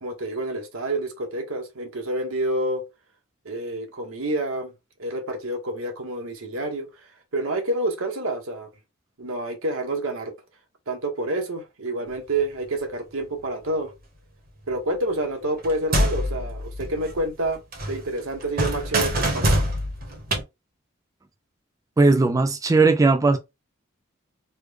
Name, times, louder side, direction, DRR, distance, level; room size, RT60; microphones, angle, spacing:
voice 1, 0.0-2.8 3.4-4.7 5.0-8.7 9.2-10.3 10.9-13.9 14.7-17.6 17.9-19.7, right 1 dB, 80° right, 1.0 m, -28 dB
sound 1, 15.6-17.5 17.7-20.4, right 1 dB, 45° right, 0.9 m, -25 dB
voice 2, 22.0-23.4, right 3 dB, 15° right, 0.3 m, -18 dB
3.3 x 2.1 x 3.3 m
head